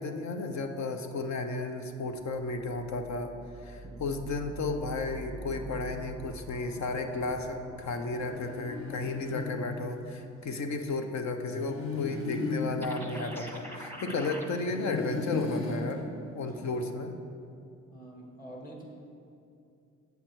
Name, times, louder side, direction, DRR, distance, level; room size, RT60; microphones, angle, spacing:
voice 1, 0.0-3.3 3.6-16.1 16.3-17.1, left 3 dB, 65° left, 6 dB, 0.8 m, -33 dB
sound 1, 2.0-10.9, right 2 dB, 10° right, 0.4 m, -47 dB
voice 2, 3.8-4.2 14.0-14.4 16.4-17.0 17.9-18.8, right 1 dB, 30° left, -1 dB, 1.9 m, -47 dB
sound 2, 8.2-10.3 11.4-14.2 14.7-16.9, left 3 dB, 45° left, 1.1 m, -36 dB
sound 3, 12.8-14.5, equal, 5° left, 1.1 m, -43 dB
8.1 x 7.6 x 4.6 m, 2.5 s
cardioid pair, 90°, 30 cm